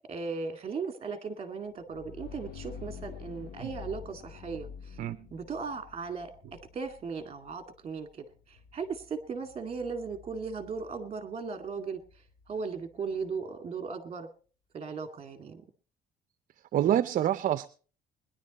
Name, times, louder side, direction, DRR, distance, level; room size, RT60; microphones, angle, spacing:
voice 1, 0.1-5.0 5.3-12.0 12.5-14.3 14.7-15.6, right 5 dB, 35° right, 8 dB, 2.1 m, -37 dB
sound 1, 1.7-13.3, left 6 dB, 70° left, 1.7 m, -49 dB
voice 2, 16.7-17.7, right 11 dB, 50° right, 15 dB, 0.6 m, -26 dB
21.0 x 11.0 x 4.1 m, 0.40 s
cardioid pair, 110°, 17 cm